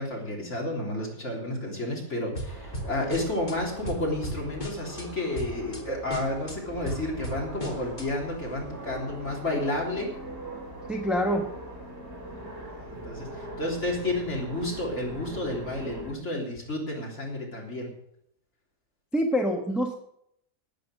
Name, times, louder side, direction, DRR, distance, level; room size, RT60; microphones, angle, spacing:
voice 1, 0.0-10.1 12.8-17.9, left 1 dB, 45° left, -2 dB, 3.8 m, -31 dB
sound 1, 2.3-3.6 3.8-5.1 5.3-5.8 6.1-8.1, equal, 30° left, 1.8 m, -36 dB
sound 2, 2.4-16.1, right 1 dB, 40° right, 4.4 m, -41 dB
voice 2, 10.9-11.5 19.1-19.9, equal, ahead, 2 dB, 1.0 m, -25 dB
12.0 x 8.7 x 6.5 m, 0.74 s
omnidirectional pair, 1.7 m